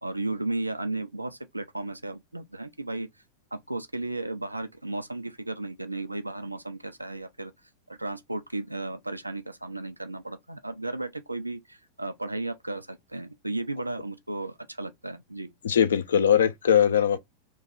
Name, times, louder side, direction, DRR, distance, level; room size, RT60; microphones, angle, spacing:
voice 1, 0.0-3.1 3.5-7.5 7.9-15.5, right 2 dB, 85° right, 0.4 m, -34 dB
voice 2, 15.6-17.2, left 8 dB, 65° left, 0.4 m, -21 dB
3.1 x 2.3 x 3.6 m
figure-of-eight pair, 90°, 0 cm